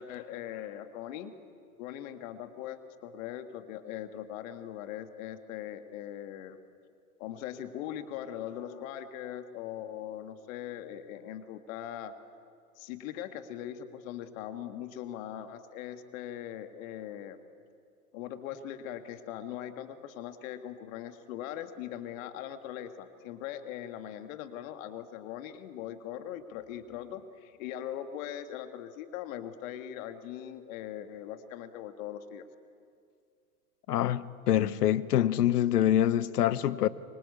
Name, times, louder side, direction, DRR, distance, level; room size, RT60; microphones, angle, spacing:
voice 1, 0.0-1.3 1.8-6.6 7.2-12.1 12.8-17.4 18.1-32.4, left 11 dB, 55° left, 2.1 m, -40 dB
voice 2, 33.9-36.9, left 11 dB, 75° left, 1.1 m, -25 dB
25.0 x 24.0 x 8.6 m
hypercardioid pair, 100°, 47 cm